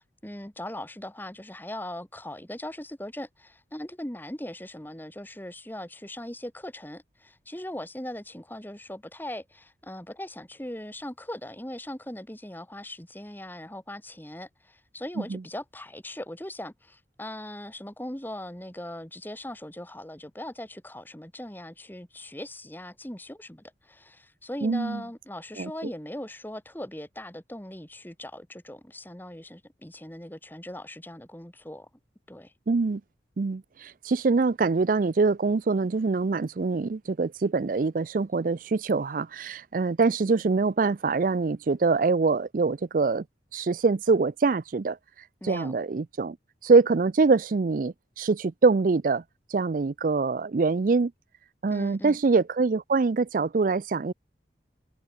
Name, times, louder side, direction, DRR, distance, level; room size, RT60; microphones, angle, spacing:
voice 1, 0.0-31.9 32.3-32.5 45.4-45.7 51.7-52.2, left 1 dB, 10° left, 1.8 m, -40 dB
voice 2, 24.6-25.0 25.6-25.7 32.7-33.0 33.4-43.2 43.5-45.0 45.4-46.4 46.6-49.2 49.5-51.1 51.6-54.1, right 4 dB, 50° right, 0.4 m, -24 dB
head